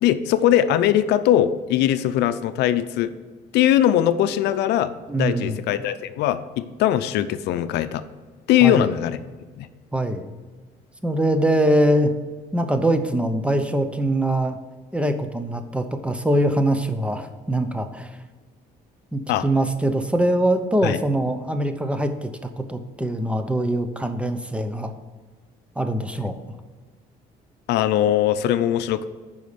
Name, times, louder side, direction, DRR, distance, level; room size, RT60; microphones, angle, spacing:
voice 1, 0.0-3.1 3.5-8.0 8.5-9.2 9.6-9.7 19.3-19.4 20.8-21.0 27.7-29.0, left 11 dB, 80° left, 12 dB, 0.6 m, -20 dB
voice 2, 5.1-5.6 8.6-8.9 9.9-10.3 11.0-12.1 12.5-14.6 14.9-18.2 19.1-22.3 22.6-24.9 25.8-26.3, right 1 dB, 5° right, 8 dB, 0.8 m, -23 dB
9.3 x 5.5 x 5.1 m, 1.4 s
cardioid pair, 110°, 17 cm